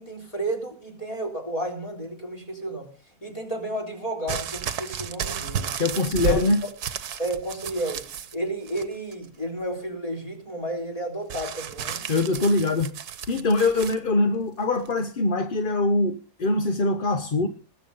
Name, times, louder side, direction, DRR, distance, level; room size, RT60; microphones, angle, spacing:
voice 1, 0.0-2.9 3.2-5.8 6.2-6.4 7.2-8.0 8.3-12.1, right 1 dB, 20° left, 3.9 m, -32 dB
sound 1, 4.3-8.4 8.7-9.3 11.3-14.0 14.9-15.0, right 8 dB, 70° right, 1.5 m, -32 dB
voice 2, 5.8-6.6 12.1-12.9 13.3-17.5, left 2 dB, 40° left, 0.9 m, -23 dB
20.0 x 8.0 x 5.5 m
omnidirectional pair, 1.7 m